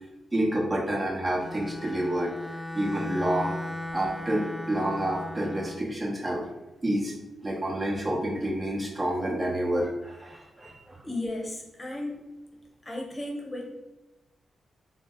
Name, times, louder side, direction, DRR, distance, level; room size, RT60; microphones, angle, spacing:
voice 1, 0.3-2.3 2.7-3.5 3.9-6.4 6.8-7.1 7.4-11.0, right 1 dB, 30° right, -3 dB, 1.0 m, -28 dB
Bowed string instrument, 1.3-5.9, left 1 dB, 5° left, 0.3 m, -37 dB
voice 2, 11.0-12.2 12.8-13.7, left 1 dB, 25° left, -1 dB, 0.9 m, -34 dB
2.7 x 2.0 x 3.7 m, 1.0 s
supercardioid pair, 45°, 0 cm